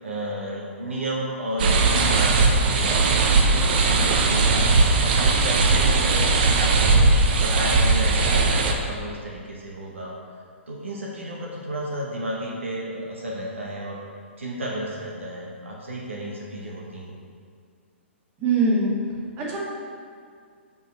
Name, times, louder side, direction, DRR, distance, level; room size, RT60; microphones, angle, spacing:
voice 1, 0.0-3.2 3.5-7.0 7.4-10.1 10.7-14.0 14.4-17.1, right 1 dB, 75° right, -3 dB, 1.2 m, -32 dB
sound 1, 1.6-8.7, right 3 dB, 50° right, 0.8 m, -19 dB
voice 2, 18.4-18.9 19.4-19.6, right 3 dB, 30° right, -4 dB, 1.8 m, -21 dB
5.5 x 4.9 x 5.8 m, 2.2 s
figure-of-eight pair, 115°, 7 cm